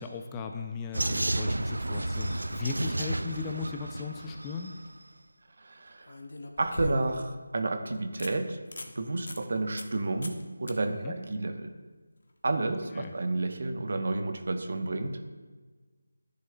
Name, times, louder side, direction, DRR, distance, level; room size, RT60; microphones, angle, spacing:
voice 1, 0.0-4.7 10.9-11.1 12.9-13.1, left 5 dB, 15° left, 4 dB, 0.4 m, -37 dB
Vehicle, 0.9-4.9, right 1 dB, 80° right, 0.4 m, -32 dB
sound 1, 4.6-4.7 6.1-7.4 7.8-7.9 8.2-8.3 8.7-8.9 9.3-9.4 9.8-10.0 10.2-10.4 10.7-10.8 13.9-14.0, left 1 dB, 65° left, 1.1 m, -39 dB
voice 2, 5.6-6.2 6.6-8.6 8.9-11.7 12.4-15.2, right 2 dB, 55° right, 7 dB, 0.9 m, -31 dB
13.5 x 6.7 x 2.3 m, 1.4 s
figure-of-eight pair, 165°, 0 cm